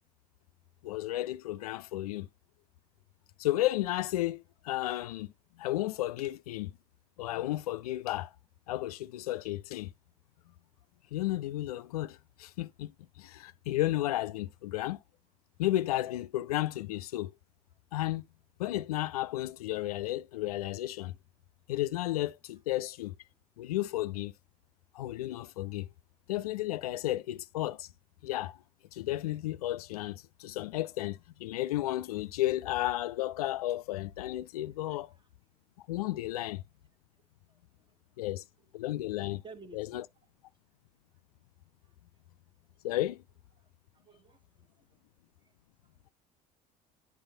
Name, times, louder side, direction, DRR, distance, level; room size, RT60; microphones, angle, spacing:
voice 1, 0.8-2.3 3.4-5.3 5.6-6.7 7.2-8.3 8.7-9.9 11.1-15.0 15.6-17.3 17.9-18.2 18.6-21.1 21.7-23.1 23.6-24.3 24.9-25.9 26.3-27.9 28.2-28.6 28.9-35.1 35.9-36.6 38.2-38.4 38.7-39.4 39.7-40.1 42.8-43.2, left 15 dB, 70° left, 0.4 m, -33 dB
voice 2, 39.4-40.0 43.9-44.7, right 4 dB, 25° right, 1.1 m, -51 dB
10.5 x 4.0 x 2.6 m
figure-of-eight pair, 60°, 20 cm